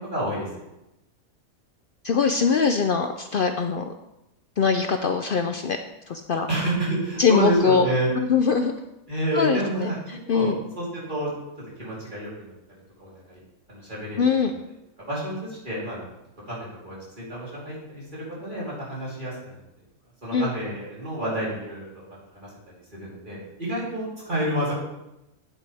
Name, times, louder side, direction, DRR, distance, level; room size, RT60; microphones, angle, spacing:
voice 1, 0.0-0.5 6.5-8.1 9.1-10.0 10.3-11.3 11.8-12.5 13.0-13.4 13.7-14.3 15.1-16.0 16.4-19.6 20.2-22.0 22.3-22.5 22.9-24.7, right 1 dB, 35° right, -7 dB, 3.7 m, -29 dB
voice 2, 2.0-3.9 4.6-6.5 7.2-7.9 8.2-8.7 9.3-10.6 14.2-14.5 20.3-20.5, left 5 dB, 70° left, 6 dB, 0.5 m, -22 dB
9.6 x 8.1 x 3.4 m, 0.90 s
omnidirectional pair, 1.5 m